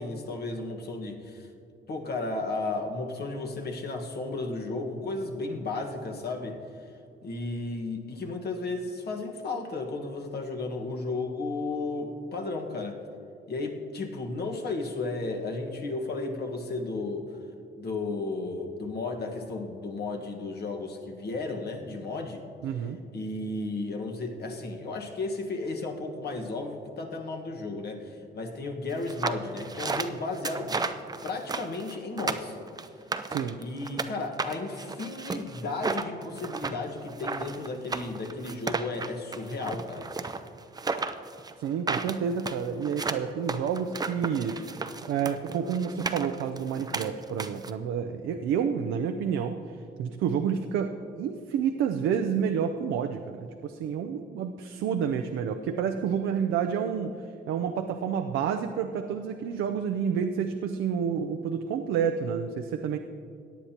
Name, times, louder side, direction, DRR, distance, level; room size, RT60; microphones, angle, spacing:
voice 1, 0.0-1.5 1.9-6.6 7.2-13.0 13.5-17.3 17.8-22.4 23.1-30.8 31.2-32.6 33.6-40.4, left 3 dB, 55° left, 2 dB, 1.5 m, -34 dB
voice 2, 22.6-23.0 33.3-33.6 41.6-44.6 45.1-57.1 57.5-63.0, right 7 dB, 80° right, 5 dB, 0.5 m, -29 dB
sound 1, 29.0-34.1 34.4-47.7, right 4 dB, 20° right, 0.5 m, -33 dB
17.5 x 9.7 x 2.9 m, 2.5 s
cardioid pair, 90°, 20 cm